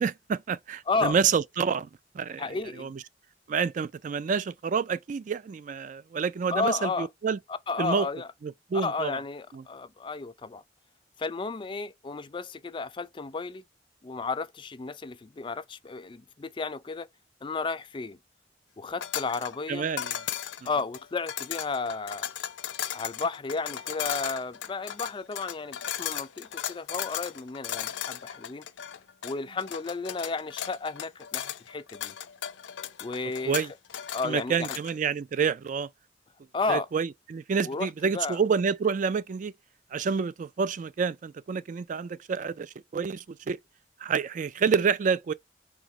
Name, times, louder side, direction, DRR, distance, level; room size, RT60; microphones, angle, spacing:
voice 1, 0.0-1.9 2.1-2.4 2.8-3.0 3.5-7.4 7.8-8.1 8.4-9.2 9.5-9.6 19.7-20.2 33.5-33.7 34.2-35.9 36.7-39.5 39.9-43.6 44.0-45.3, right 6 dB, 45° right, 0.3 m, -28 dB
voice 2, 0.9-1.2 2.4-2.9 6.5-7.1 7.5-8.3 8.7-10.6 11.2-13.6 14.0-17.1 17.4-18.2 18.8-19.9 20.6-22.2 22.9-28.7 29.2-32.1 33.0-33.7 34.1-34.7 36.5-36.9 37.6-38.4, left 4 dB, 25° left, 0.4 m, -33 dB
sound 1, 19.0-35.0, left 10 dB, 85° left, 0.5 m, -36 dB
3.6 x 3.0 x 4.8 m
head